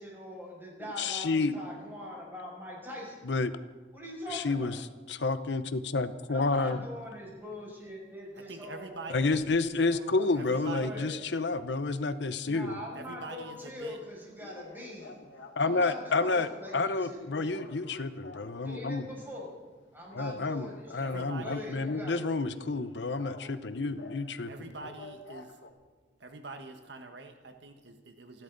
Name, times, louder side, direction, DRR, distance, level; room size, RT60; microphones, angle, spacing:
voice 1, 0.0-3.3 3.9-4.7 6.3-9.2 9.5-11.1 12.4-15.3 15.6-17.6 18.6-19.6 19.9-22.3, left 1 dB, 10° right, -3 dB, 6.4 m, -43 dB
voice 2, 1.0-1.6 3.2-3.5 4.3-4.8 5.1-6.8 9.1-12.8 15.6-19.1 20.1-24.5, left 3 dB, 70° left, 12 dB, 0.8 m, -30 dB
sound 1, 7.0-7.2 9.3-9.7 10.2-12.3 12.6-12.8 13.1-13.2 13.5-13.6 13.8-13.9 14.4-16.9 17.3-19.0 19.4-19.7 20.0-22.1 22.4-24.3 24.8-25.7, left 2 dB, 85° left, 2.2 m, -49 dB
voice 3, 8.4-9.4 10.3-11.1 12.9-14.0 21.0-21.7 24.5-25.6 26.2-28.4, right 3 dB, 70° right, 6 dB, 1.4 m, -44 dB
29.0 x 12.0 x 4.0 m, 1.4 s
head